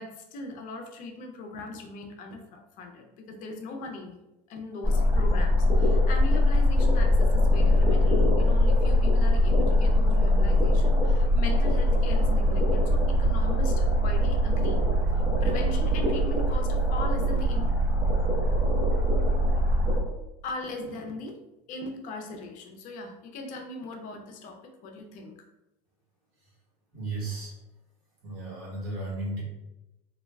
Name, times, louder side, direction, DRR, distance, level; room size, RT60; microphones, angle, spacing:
voice 1, 0.0-4.2 4.5-14.8 15.4-17.7 20.4-21.4 21.7-25.5, left 2 dB, 45° left, 4 dB, 0.5 m, -39 dB
sound 1, 4.8-20.0, left 1 dB, 10° right, 0.7 m, -22 dB
voice 2, 26.9-27.6 28.2-29.4, right 2 dB, 60° right, -5 dB, 1.1 m, -34 dB
2.3 x 2.1 x 3.2 m, 0.94 s
supercardioid pair, 135°, 18 cm